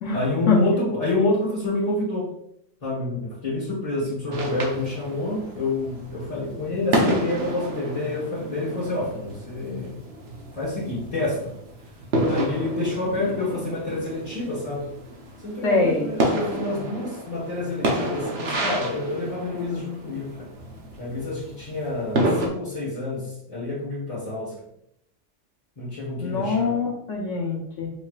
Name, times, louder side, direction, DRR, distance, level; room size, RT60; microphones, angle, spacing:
voice 1, 0.1-2.3 2.8-10.0 10.5-11.5 12.3-14.9 15.4-20.5 21.0-24.6 25.8-26.8, left 2 dB, 30° left, -9 dB, 1.4 m, -28 dB
sound 1, 4.3-22.5, right 1 dB, 60° right, 1.0 m, -30 dB
voice 2, 15.6-16.1 26.2-27.9, left 4 dB, 75° left, -2 dB, 1.2 m, -23 dB
5.4 x 3.1 x 2.4 m, 0.73 s
omnidirectional pair, 1.3 m